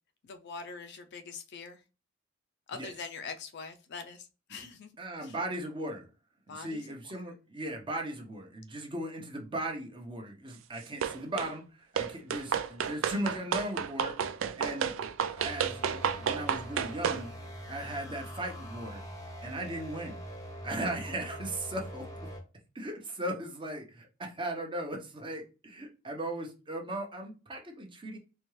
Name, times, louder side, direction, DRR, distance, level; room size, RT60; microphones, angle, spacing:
voice 1, 0.3-1.8 2.7-4.9 5.2-5.3 6.5-6.9, left 5 dB, 55° left, 0.5 m, -43 dB
voice 2, 5.0-6.1 6.5-14.1 14.6-14.9 15.4-17.3 17.7-19.0 19.4-20.2 20.6-22.0 22.7-28.2, right 1 dB, 25° right, 0.8 m, -37 dB
sound 1, 11.0-11.5 12.0-17.2, right 7 dB, 70° right, 0.4 m, -31 dB
sound 2, 15.4-22.4, equal, 20° left, 0.8 m, -43 dB
4.2 x 2.3 x 3.1 m
head